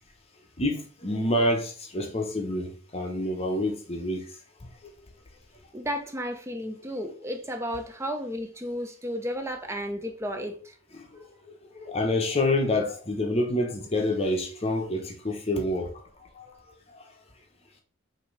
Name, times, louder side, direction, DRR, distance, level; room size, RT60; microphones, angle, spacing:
voice 1, 0.6-4.3 11.1-11.2 11.8-16.0 16.4-16.5 16.9-17.0, left 1 dB, 30° left, 0.7 m, -27 dB
voice 2, 5.7-10.8, equal, 15° right, 0.5 m, -33 dB
5.6 x 2.7 x 3.2 m
head